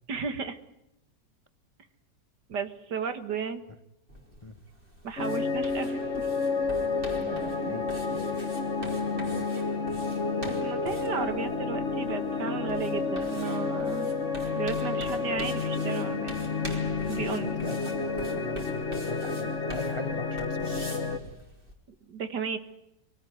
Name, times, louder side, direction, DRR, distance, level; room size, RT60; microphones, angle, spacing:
voice 1, 0.1-0.6 2.5-3.6 5.0-6.3 10.5-14.2 14.5-16.4 17.1-17.5 22.1-22.6, right 6 dB, 70° right, 10 dB, 2.2 m, -34 dB
sound 1, 4.1-21.7, equal, 30° right, 4.1 m, -45 dB
sound 2, 5.2-21.2, left 4 dB, 40° left, 1.9 m, -30 dB
voice 2, 7.2-8.4 8.8-9.5 17.2-21.1, left 1 dB, 20° left, 10 dB, 0.8 m, -41 dB
24.0 x 18.0 x 9.4 m, 0.87 s
omnidirectional pair, 1.9 m